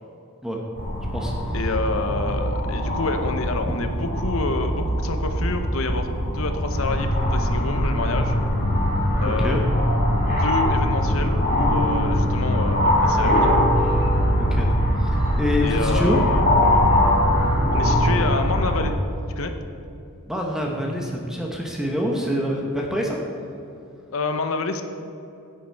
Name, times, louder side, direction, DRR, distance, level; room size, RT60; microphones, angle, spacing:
sound 1, 0.8-18.8, equal, 40° left, 2.2 m, -21 dB
voice 1, 1.5-6.1 6.3-8.4 9.2-9.7 10.4-13.5 15.6-16.7 17.7-19.0 19.4-19.5 24.1-24.8, left 3 dB, 70° left, 7 dB, 0.8 m, -28 dB
voice 2, 9.2-9.6 13.2-13.3 14.4-14.7 15.0-16.2 20.3-23.2, equal, ahead, -1 dB, 0.9 m, -26 dB
9.9 x 7.6 x 4.6 m, 2.8 s
head